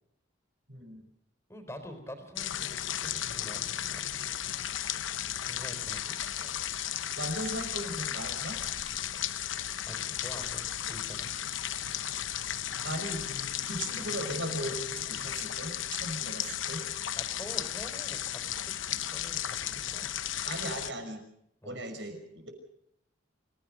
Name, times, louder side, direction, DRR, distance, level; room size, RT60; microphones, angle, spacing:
voice 1, 0.7-1.0 7.2-8.6 12.8-13.3 13.6-16.8 20.4-21.2 21.6-22.5, right 1 dB, 65° right, 6 dB, 5.9 m, -37 dB
voice 2, 1.5-4.1 5.4-6.8 9.8-11.3 17.2-20.5 21.6-21.8, equal, 15° left, 7 dB, 3.9 m, -47 dB
sound 1, 2.4-20.9, left 11 dB, 75° left, 0.9 m, -35 dB
27.0 x 16.5 x 6.5 m, 0.75 s
head